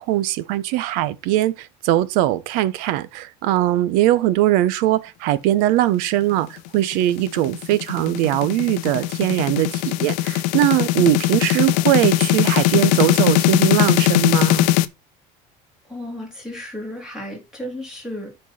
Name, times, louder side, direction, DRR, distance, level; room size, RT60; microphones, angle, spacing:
voice 1, 0.0-1.5 1.8-6.5 6.7-14.7, right 14 dB, 60° right, 0.9 m, -20 dB
sound 1, 6.7-14.8, left 16 dB, 65° left, 0.7 m, -20 dB
voice 2, 12.6-13.0 15.9-18.3, left 1 dB, 5° right, 2.9 m, -34 dB
12.5 x 4.4 x 4.2 m
cardioid pair, 180°, 16 cm